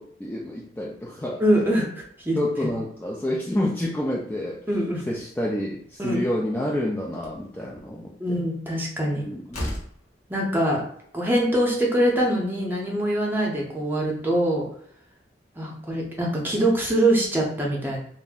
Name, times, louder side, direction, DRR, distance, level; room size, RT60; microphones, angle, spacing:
voice 1, 0.0-1.4 2.4-4.6 5.1-8.4 9.2-9.6, left 1 dB, 10° left, -3 dB, 0.3 m, -28 dB
voice 2, 1.4-2.4 4.7-5.0 6.0-6.2 8.2-9.2 10.3-10.8 11.1-14.6 15.6-18.0, right 1 dB, 10° right, -2 dB, 0.7 m, -23 dB
Slam, 7.1-7.5 9.0-9.1 9.5-10.0, equal, 40° left, 0.8 m, -32 dB
2.4 x 2.1 x 3.5 m, 0.66 s
head